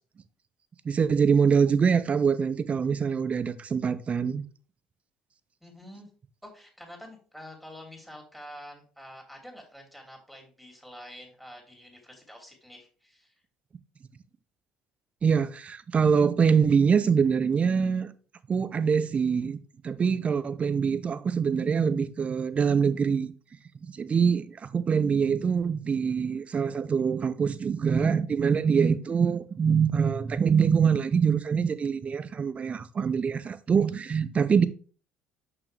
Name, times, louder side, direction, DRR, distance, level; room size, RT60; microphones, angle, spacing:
voice 1, 0.8-4.4 15.2-18.1 18.5-19.6 19.8-23.3 23.9-34.7, right 6 dB, 35° right, 0.7 m, -24 dB
voice 2, 5.6-6.1 6.4-13.3, equal, ahead, 3.2 m, -47 dB
6.2 x 5.8 x 3.3 m
hypercardioid pair, 60°, 4 cm